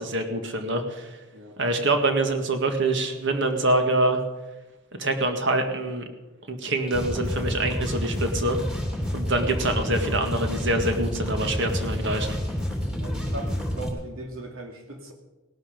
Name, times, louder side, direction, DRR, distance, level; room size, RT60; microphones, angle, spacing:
voice 1, 0.0-1.2 1.6-4.2 5.0-6.1 6.5-8.6 9.1-12.4, right 2 dB, 60° right, 6 dB, 1.9 m, -25 dB
sound 1, 6.8-13.9, equal, 5° right, 2.6 m, -29 dB
voice 2, 13.0-15.1, right 2 dB, 80° right, 3 dB, 2.7 m, -38 dB
18.0 x 12.0 x 5.2 m, 1.1 s
head